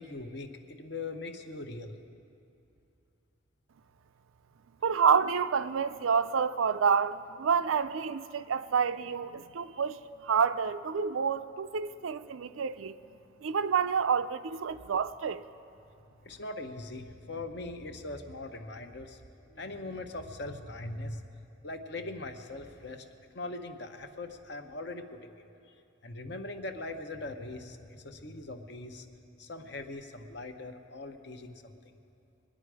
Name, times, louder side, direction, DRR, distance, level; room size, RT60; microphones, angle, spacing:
voice 1, 0.0-1.9 9.0-9.6 16.2-19.2 19.5-23.1 23.3-25.4 26.0-29.1 29.4-31.7, left 2 dB, 55° left, 0.9 m, -41 dB
voice 2, 4.8-13.0 13.4-15.4, right 6 dB, 80° right, 0.5 m, -28 dB
23.0 x 10.0 x 4.8 m
head